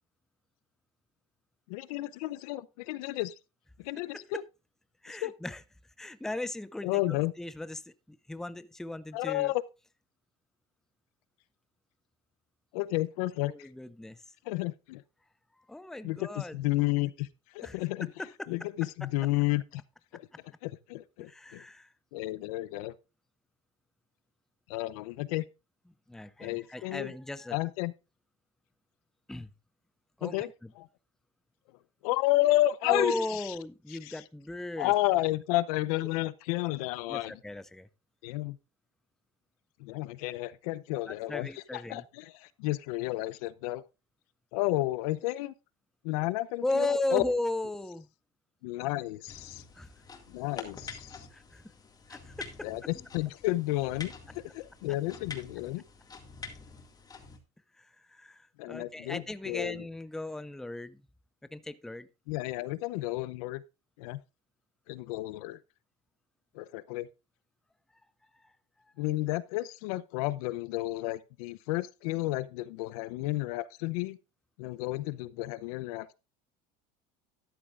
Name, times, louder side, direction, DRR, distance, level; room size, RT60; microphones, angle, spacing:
voice 1, 1.7-3.3 3.8-4.4 5.2-5.3 6.8-7.3 9.1-9.6 12.7-13.5 14.5-15.0 16.0-17.3 17.5-18.1 18.5-19.8 20.1-20.3 20.6-21.6 22.1-22.9 24.7-25.4 26.4-27.1 27.5-27.9 30.2-30.5 30.8-30.9 32.0-33.5 33.9-34.2 34.8-37.3 38.2-38.6 39.8-43.8 44.5-45.5 46.0-47.2 48.6-49.6 50.3-51.3 52.6-55.8 58.6-59.8 62.3-63.6 64.0-64.2 64.9-65.6 66.5-67.1 69.0-74.2 74.6-76.1, left 18 dB, 80° left, 0.7 m, -31 dB
voice 2, 5.0-5.6 6.0-9.5 13.4-14.2 15.7-16.6 17.6-18.5 19.0-19.1 21.3-21.9 26.1-27.6 29.3-29.5 30.2-30.7 32.8-34.9 37.1-37.9 41.1-42.0 46.6-48.1 49.7-49.9 51.3-51.6 52.1-52.7 57.8-61.0 61.5-62.1, left 2 dB, ahead, 0.5 m, -36 dB
sound 1, 49.3-57.4, left 4 dB, 20° left, 2.1 m, -47 dB
13.0 x 10.0 x 2.5 m
supercardioid pair, 130°, 19 cm